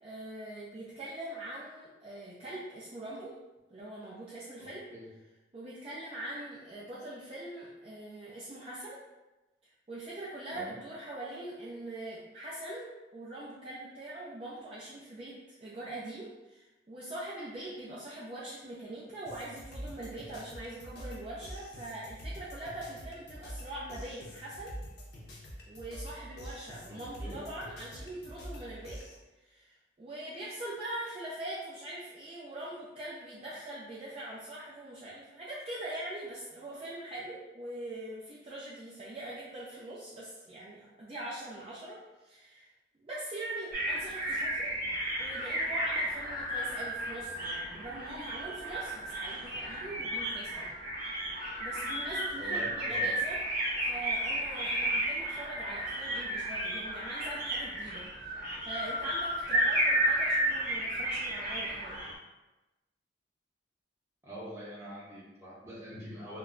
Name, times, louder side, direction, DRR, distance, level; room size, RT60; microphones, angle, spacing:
voice 1, 0.0-3.3 3.7-4.8 5.5-9.0 9.9-15.3 15.6-24.7 25.7-29.0 29.4-42.7 43.0-44.8 45.2-50.7 51.2-51.3 51.6-53.4 53.8-62.0, right 1 dB, 30° right, -7 dB, 0.4 m, -42 dB
voice 2, 4.6-5.1 10.5-10.7 26.9-27.4 52.4-53.1 64.2-66.4, equal, 15° right, -7 dB, 0.8 m, -44 dB
sound 1, 19.3-29.2, equal, 60° left, 0.5 m, -45 dB
sound 2, 43.7-62.1, right 1 dB, 50° right, 0.7 m, -33 dB
2.2 x 2.0 x 3.6 m, 1.1 s
head